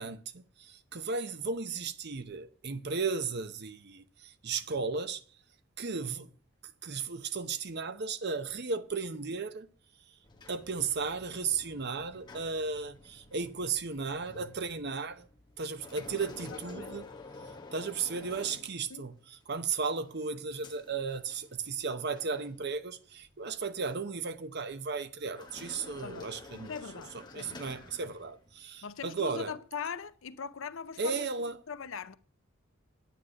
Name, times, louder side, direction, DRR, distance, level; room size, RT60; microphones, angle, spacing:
voice 1, 0.0-5.2 5.8-6.3 6.6-9.7 10.5-15.3 15.6-17.1 17.7-26.7 27.1-29.5 31.0-31.6, right 4 dB, 55° right, 0.8 m, -35 dB
sound 1, 10.2-19.2 19.7-21.9 22.1-22.4 23.1-24.0 25.2-28.6, left 3 dB, 20° left, 1.4 m, -50 dB
voice 2, 16.5-17.0 18.9-19.1 26.0-27.6 28.8-31.3 31.7-32.1, left 6 dB, 65° left, 0.5 m, -41 dB
9.5 x 9.2 x 6.3 m
head